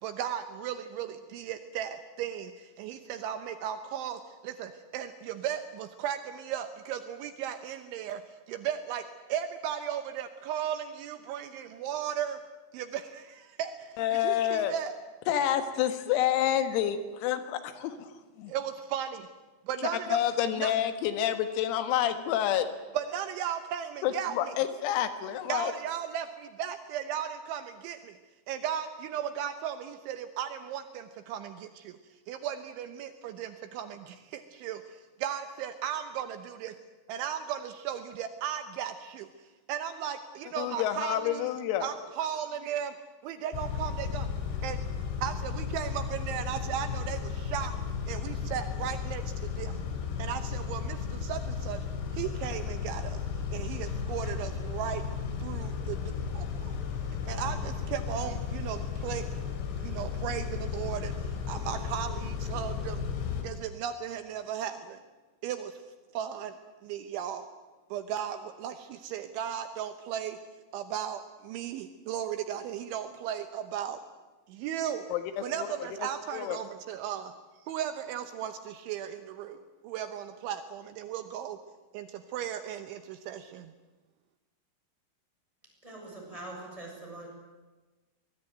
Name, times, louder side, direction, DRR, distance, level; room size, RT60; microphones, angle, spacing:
voice 1, 0.0-8.2 8.5-12.4 12.7-14.9 18.5-19.3 19.7-20.2 20.5-20.7 22.9-24.5 25.5-28.2 28.5-32.0 32.3-36.7 37.1-39.3 39.7-41.5 41.8-42.9 43.2-44.3 44.6-44.8 45.2-47.7 48.1-49.8 50.2-51.8 52.1-53.2 53.5-55.0 55.4-56.7 57.3-59.4 59.8-63.0 63.4-65.0 65.4-65.8 66.1-66.6 66.8-67.5 67.9-70.4 70.7-74.0 74.5-75.0 75.4-77.3 77.6-81.6 81.9-83.7, right 9 dB, 75° right, 9 dB, 3.1 m, -36 dB
voice 2, 14.0-14.7 15.3-18.1 18.4-18.5 20.1-22.7 24.0-25.7 40.6-41.9 75.1-76.6, left 11 dB, 90° left, 9 dB, 4.3 m, -29 dB
Car / Idling / Accelerating revving vroom, 43.5-63.4, left 6 dB, 65° left, 4.5 m, -34 dB
voice 3, 85.8-87.3, right 2 dB, 5° right, -1 dB, 6.9 m, -43 dB
23.5 x 20.5 x 9.2 m, 1.2 s
omnidirectional pair, 6.0 m